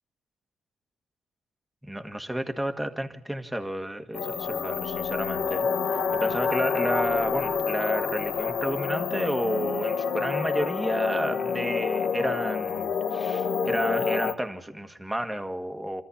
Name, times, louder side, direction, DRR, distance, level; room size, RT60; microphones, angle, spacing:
voice 1, 1.9-5.7 6.1-16.0, right 1 dB, 5° right, 6 dB, 1.8 m, -31 dB
sound 1, 4.1-14.3, left 6 dB, 70° left, 1.3 m, -28 dB
26.0 x 14.0 x 8.6 m, 0.85 s
cardioid pair, 90°, 0 cm